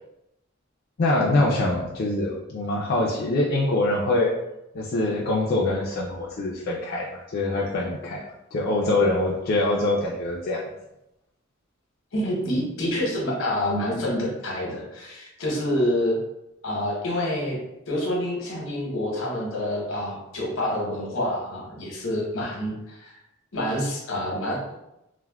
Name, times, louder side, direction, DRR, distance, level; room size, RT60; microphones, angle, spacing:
voice 1, 1.0-4.3 4.7-8.2 8.5-10.7, left 2 dB, 50° left, -4 dB, 0.4 m, -24 dB
voice 2, 12.1-16.2 16.6-17.6 17.9-23.1 23.5-24.6, left 1 dB, 80° left, -3 dB, 0.9 m, -27 dB
3.3 x 2.1 x 2.2 m, 0.89 s
head